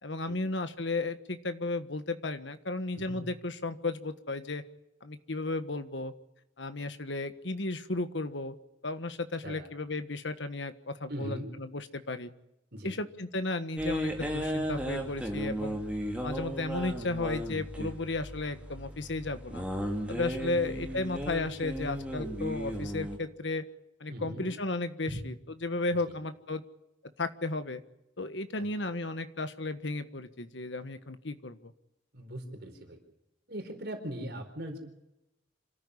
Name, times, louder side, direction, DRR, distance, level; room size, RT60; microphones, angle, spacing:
voice 1, 0.0-4.6 5.0-6.1 6.6-8.5 8.8-12.3 12.8-15.8 16.2-19.6 20.1-23.6 24.0-25.3 25.6-26.6 27.2-27.8 28.2-31.7, left 2 dB, 70° left, 10 dB, 1.5 m, -34 dB
voice 2, 11.1-11.5 12.7-13.0 20.5-20.6 20.9-21.0 24.1-24.5 25.1-25.2 26.1-26.2 28.5-28.7 32.1-33.0 33.5-34.8, equal, 60° right, 4 dB, 4.5 m, -40 dB
sound 1, 13.8-23.2, equal, 5° right, 2.8 m, -35 dB
26.5 x 14.0 x 9.9 m, 0.89 s
head